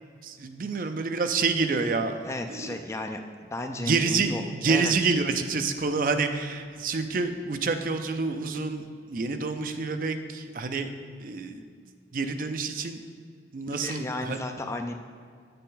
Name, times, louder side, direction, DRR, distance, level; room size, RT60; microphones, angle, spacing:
voice 1, 0.2-2.1 2.5-2.7 3.9-10.9 11.2-11.6 12.1-13.0 13.5-14.4, right 4 dB, 50° right, 8 dB, 0.4 m, -28 dB
voice 2, 2.2-3.2 3.5-5.1 13.7-14.9, left 2 dB, 15° left, 5 dB, 0.3 m, -34 dB
8.2 x 6.7 x 3.8 m, 2.1 s
head